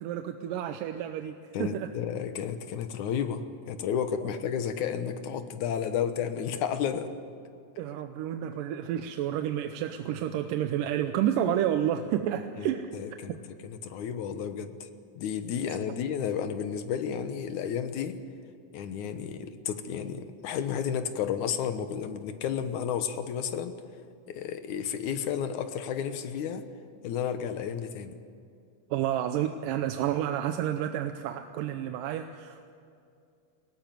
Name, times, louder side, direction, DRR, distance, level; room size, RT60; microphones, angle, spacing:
voice 1, 0.0-1.9 7.8-12.9 13.3-13.4 28.9-32.7, right 10 dB, 90° right, 8 dB, 2.4 m, -30 dB
voice 2, 1.5-7.1 12.6-13.4 13.6-14.9 15.2-18.2 18.7-23.7 24.3-26.7 27.0-28.2, left 8 dB, 70° left, 9 dB, 2.5 m, -32 dB
21.5 x 18.0 x 9.2 m, 2.4 s
omnidirectional pair, 3.7 m